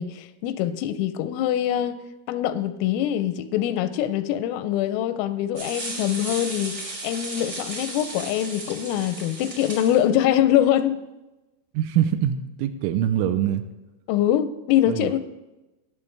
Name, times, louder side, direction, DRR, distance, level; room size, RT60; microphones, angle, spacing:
voice 1, 0.0-2.0 2.3-11.0 14.1-15.2, left 11 dB, 90° left, 12 dB, 3.2 m, -24 dB
sound 1, 5.5-10.0, right 2 dB, 40° right, 1.3 m, -35 dB
voice 2, 11.7-13.6 14.9-15.2, right 10 dB, 85° right, 9 dB, 2.9 m, -24 dB
19.0 x 7.5 x 3.3 m, 1.0 s
omnidirectional pair, 5.7 m